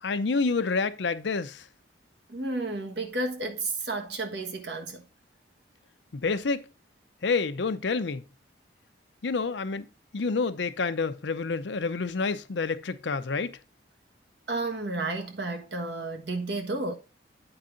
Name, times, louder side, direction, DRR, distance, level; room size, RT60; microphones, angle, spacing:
voice 1, 0.0-1.6 6.1-6.7 7.2-8.2 9.2-9.9 10.1-13.6, left 4 dB, 75° left, 0.6 m, -28 dB
voice 2, 2.3-5.0 14.5-16.9, right 2 dB, 65° right, 1.4 m, -32 dB
8.8 x 4.7 x 3.8 m
head